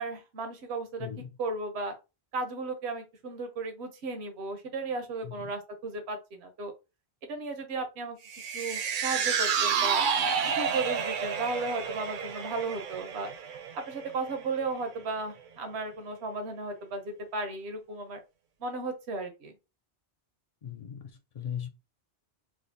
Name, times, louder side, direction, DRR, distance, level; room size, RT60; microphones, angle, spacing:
voice 1, 0.0-1.1 1.4-1.9 2.3-6.7 7.3-8.2 8.5-10.1 10.6-13.3 13.7-18.2 18.6-19.5, right 3 dB, 85° right, 1.0 m, -35 dB
sound 1, 8.3-14.7 15.1-15.2, right 6 dB, 60° right, 0.6 m, -30 dB
voice 2, 20.6-21.7, left 9 dB, 55° left, 0.4 m, -38 dB
4.9 x 2.1 x 2.6 m
omnidirectional pair, 1.1 m